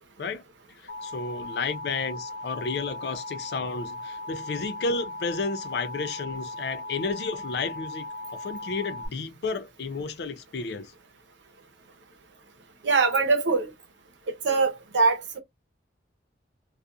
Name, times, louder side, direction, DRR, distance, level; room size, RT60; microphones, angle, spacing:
Alarm, 0.9-9.1, left 1 dB, 80° left, 0.9 m, -38 dB
voice 1, 1.0-8.0 8.3-10.9, left 4 dB, 60° left, 0.4 m, -32 dB
voice 2, 12.8-13.7 14.3-15.4, right 4 dB, 80° right, 0.8 m, -23 dB
2.4 x 2.3 x 2.5 m
head